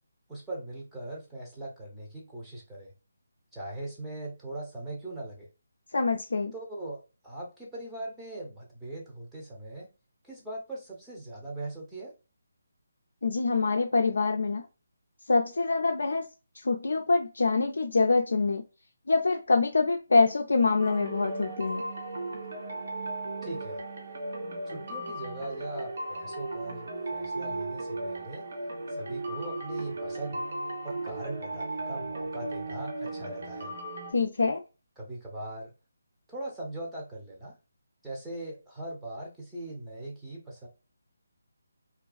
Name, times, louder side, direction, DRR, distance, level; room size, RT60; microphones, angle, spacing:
voice 1, 0.3-2.9 3.5-5.5 6.5-9.9 10.2-12.1 23.4-23.8 24.7-28.5 28.9-30.4 30.8-33.7 35.0-35.7 36.3-37.6 38.0-40.7, right 2 dB, 5° right, -5 dB, 0.7 m, -40 dB
voice 2, 5.9-6.5 13.2-14.7 15.3-16.3 16.5-18.6 19.1-21.8 34.1-34.6, left 3 dB, 70° left, 3 dB, 0.3 m, -25 dB
sound 1, 20.8-34.1, right 2 dB, 60° right, 0.7 m, -36 dB
2.4 x 2.2 x 2.3 m, 0.31 s
figure-of-eight pair, 150°, 0 cm